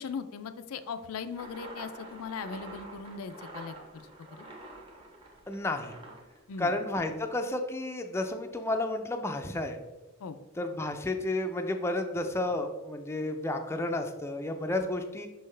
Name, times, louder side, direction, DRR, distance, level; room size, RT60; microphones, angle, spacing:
voice 1, 0.0-4.4 6.5-6.7 10.2-10.4, left 5 dB, 70° left, 10 dB, 0.4 m, -39 dB
sound 1, 1.3-7.2, right 2 dB, 25° right, 0.9 m, -47 dB
voice 2, 5.5-5.9 6.6-9.8 10.6-15.3, left 2 dB, 10° left, 5 dB, 0.4 m, -31 dB
5.7 x 5.5 x 3.2 m, 1.1 s
head